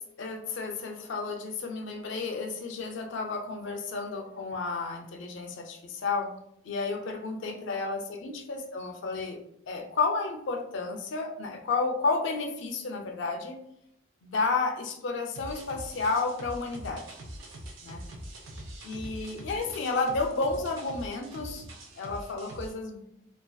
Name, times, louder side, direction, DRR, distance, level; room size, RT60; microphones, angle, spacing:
voice 1, 0.2-6.3 6.6-13.6 14.2-17.0 17.8-18.0 18.8-21.6 22.0-23.0, left 3 dB, 70° left, 3 dB, 0.4 m, -31 dB
sound 1, 15.4-22.7, right 1 dB, 80° right, 0.5 m, -43 dB
2.5 x 2.4 x 2.2 m, 0.75 s
head